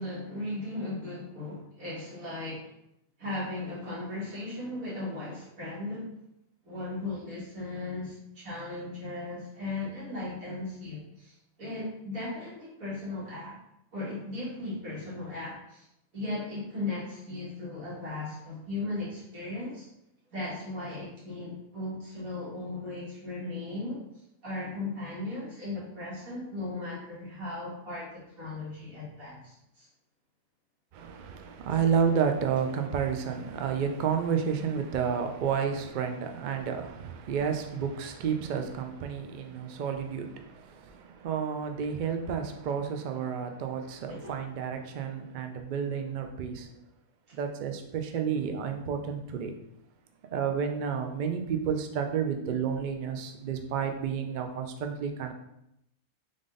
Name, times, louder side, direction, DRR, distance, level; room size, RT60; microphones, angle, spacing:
voice 1, 0.0-2.7 3.2-6.1 6.6-13.6 13.9-15.9 16.1-19.9 20.3-24.0 24.4-29.9 44.1-44.4 47.3-47.4, left 2 dB, 85° right, -7 dB, 2.2 m, -37 dB
voice 2, 30.9-46.7 47.3-49.5 50.3-55.3, right 7 dB, 65° right, 5 dB, 0.4 m, -31 dB
3.6 x 3.6 x 3.8 m, 0.80 s
omnidirectional pair, 1.4 m